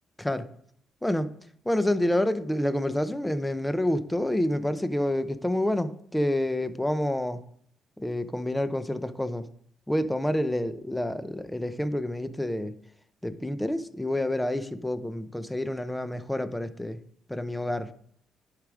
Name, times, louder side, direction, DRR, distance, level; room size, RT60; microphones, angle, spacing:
voice 1, 1.6-7.4 8.0-9.5 9.9-12.7 13.2-17.0 17.3-17.9, left 1 dB, 5° left, 12 dB, 0.7 m, -28 dB
10.5 x 4.9 x 5.0 m, 0.65 s
cardioid pair, 90°, 0 cm